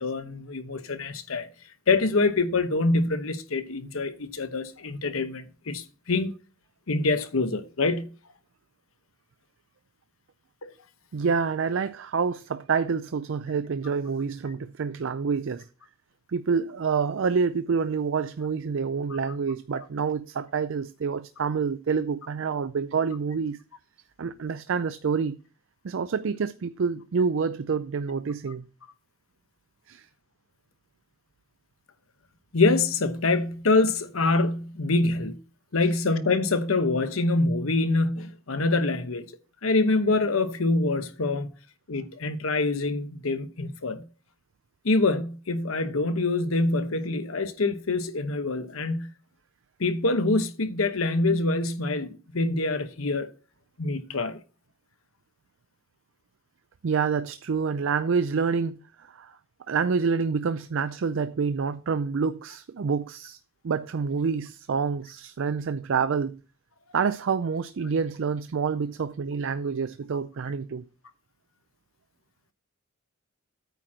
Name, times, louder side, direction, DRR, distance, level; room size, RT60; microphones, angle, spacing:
voice 1, 0.0-1.5 1.9-6.3 6.9-8.1 10.6-10.7 32.5-35.4 35.7-39.3 39.6-41.5 41.9-44.1 44.8-49.1 49.8-53.3 53.8-54.4, left 3 dB, 80° left, 1.0 m, -25 dB
voice 2, 11.1-15.6 16.3-23.6 24.2-25.4 25.8-28.7 29.9-30.1 56.8-59.3 59.7-63.4 63.6-66.4 66.9-70.8, right 5 dB, 65° right, 0.4 m, -27 dB
9.1 x 4.3 x 6.1 m
head